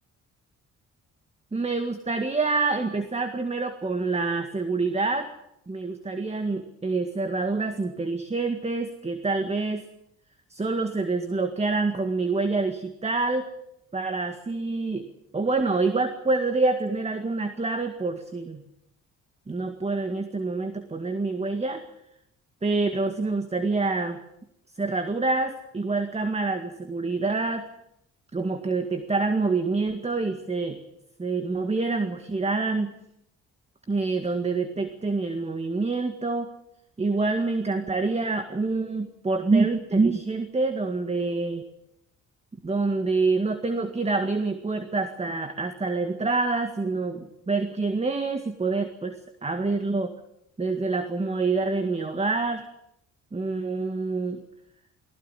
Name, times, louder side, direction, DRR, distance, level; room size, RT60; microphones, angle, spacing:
voice 1, 1.5-5.3 5.7-9.8 10.5-13.5 13.9-15.1 15.3-18.6 19.5-21.9 22.6-24.2 24.8-27.7 28.3-30.8 31.2-32.9 33.9-36.5 37.0-41.6 42.6-50.1 50.6-52.7 53.3-54.4, right 3 dB, 20° right, 8 dB, 1.9 m, -26 dB
19.0 x 17.0 x 10.0 m, 0.79 s
cardioid pair, 90°, 30 cm